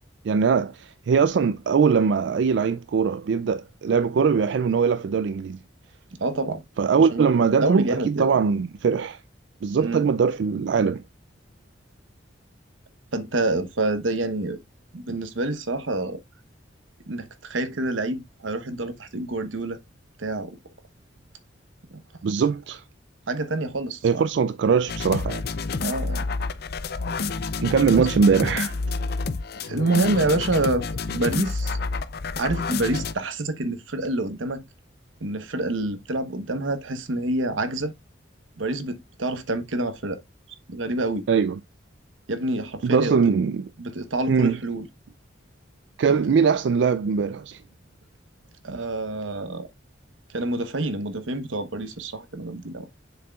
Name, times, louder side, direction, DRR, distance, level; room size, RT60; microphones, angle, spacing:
voice 1, 0.2-5.6 6.8-9.2 9.6-11.0 22.2-22.8 24.0-25.4 27.6-28.8 41.3-41.6 42.8-43.7 44.3-44.6 46.0-47.6, right 6 dB, 65° right, 0.3 m, -21 dB
voice 2, 6.2-6.6 7.1-8.3 9.8-10.0 13.1-14.6 14.9-16.2 17.1-19.8 20.2-20.6 21.9-22.0 23.3-24.2 25.8-26.3 27.9-28.1 29.5-31.8 32.4-34.6 35.2-37.9 38.6-40.2 40.7-41.3 42.3-43.1 43.8-44.9 46.1-46.3 48.6-49.7 50.3-52.9, right 2 dB, 90° right, 1.0 m, -27 dB
sound 1, 24.9-33.1, left 4 dB, 55° left, 0.5 m, -29 dB
7.1 x 6.0 x 2.3 m
head